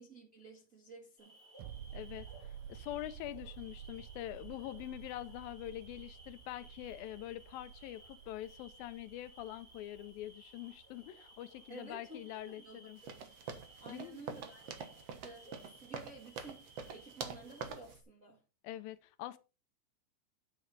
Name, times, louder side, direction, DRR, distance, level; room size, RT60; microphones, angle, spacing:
voice 1, 0.0-1.4 11.7-12.9 13.1-13.4 13.8-14.6 15.2-18.4, right 3 dB, 40° right, 1.1 m, -53 dB
sound 1, 1.2-17.7, right 1 dB, 10° right, 5.0 m, -60 dB
sound 2, 1.6-12.9 13.2-13.3, right 10 dB, 85° right, 1.7 m, -52 dB
voice 2, 1.9-13.0 13.9-14.2 18.6-19.4, left 14 dB, 80° left, 2.3 m, -45 dB
sound 3, 13.0-18.0, right 6 dB, 60° right, 1.7 m, -45 dB
9.7 x 8.4 x 4.0 m
omnidirectional pair, 4.3 m